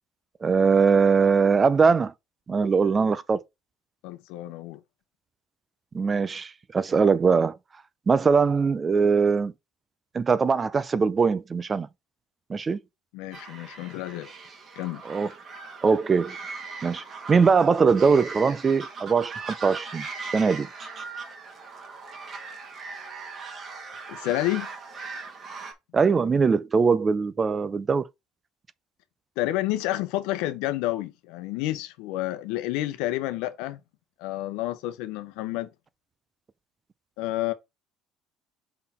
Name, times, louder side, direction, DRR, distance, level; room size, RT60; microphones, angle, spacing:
voice 1, 0.4-2.1 2.5-3.4 5.9-7.6 8.1-9.5 10.1-11.9 12.5-12.8 15.1-15.3 15.8-16.4 16.8-20.0 20.3-20.7 25.9-28.0, right 5 dB, 30° right, 0.5 m, -21 dB
voice 2, 4.0-4.8 13.1-14.3 14.8-15.0 24.1-24.7 29.4-33.8 34.2-35.7 37.2-37.5, left 16 dB, 80° left, 0.8 m, -29 dB
sound 1, 13.3-25.7, right 4 dB, 45° right, 1.9 m, -39 dB
5.7 x 3.9 x 4.3 m
supercardioid pair, 95°, 0 cm